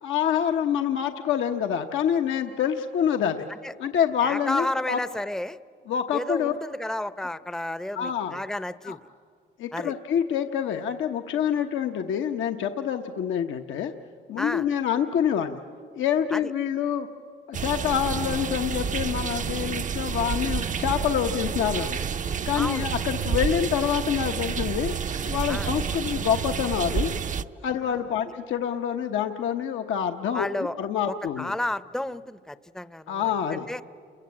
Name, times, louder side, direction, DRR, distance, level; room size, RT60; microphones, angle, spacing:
voice 1, 0.0-3.5 3.8-5.0 5.9-6.5 7.9-8.4 8.8-9.0 9.6-13.9 14.3-15.6 15.9-17.1 17.5-22.0 22.4-24.9 25.3-27.1 27.6-30.5 30.8-31.5 33.1-33.7, left 9 dB, 75° left, 5 dB, 1.1 m, -26 dB
voice 2, 4.2-5.6 6.1-9.0 9.7-9.9 14.4-14.7 16.3-16.4 22.6-22.9 25.5-25.7 27.8-27.9 30.3-30.8 31.1-33.8, left 1 dB, 5° left, 15 dB, 0.6 m, -32 dB
sound 1, 17.5-27.4, right 7 dB, 40° right, 0.6 m, -29 dB
29.5 x 22.0 x 8.7 m, 2.2 s
cardioid pair, 90°, 20 cm